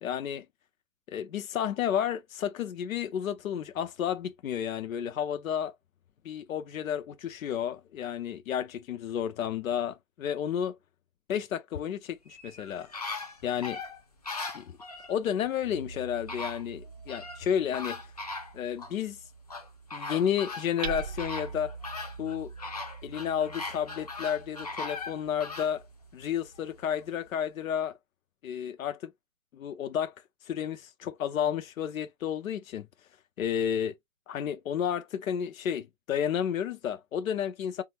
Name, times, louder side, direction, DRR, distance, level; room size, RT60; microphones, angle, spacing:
voice 1, 0.0-0.5 1.1-5.7 6.2-10.8 11.3-12.9 13.4-13.8 14.5-14.8 15.1-18.0 18.5-19.2 19.9-21.8 22.2-22.5 23.0-25.8 26.1-28.0 28.4-29.1 29.5-30.1 30.4-32.9 33.4-33.9 34.3-37.8, left 9 dB, 90° left, 0.5 m, -31 dB
sound 1, 12.3-15.1 15.9-16.0 16.3-17.4 17.7-18.9 19.5-25.7 26.2-26.3, left 3 dB, 30° left, 0.4 m, -39 dB
Hammer, 15.6-27.3, right 6 dB, 50° right, 0.7 m, -45 dB
3.0 x 2.3 x 2.7 m
hypercardioid pair, 155°, 40 cm